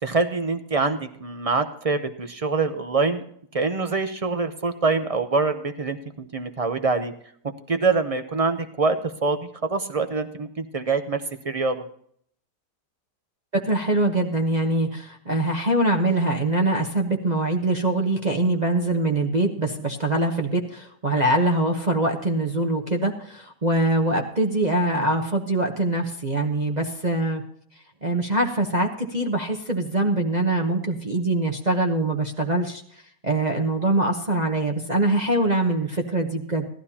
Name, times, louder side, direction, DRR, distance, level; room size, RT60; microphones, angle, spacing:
voice 1, 0.0-3.2 3.5-6.0 6.3-7.1 7.4-11.8, right 4 dB, 45° right, 8 dB, 0.4 m, -25 dB
voice 2, 13.5-27.4 28.0-32.8 33.2-36.7, right 2 dB, 30° right, 1 dB, 0.9 m, -23 dB
17.5 x 12.5 x 2.8 m, 0.64 s
omnidirectional pair, 1.8 m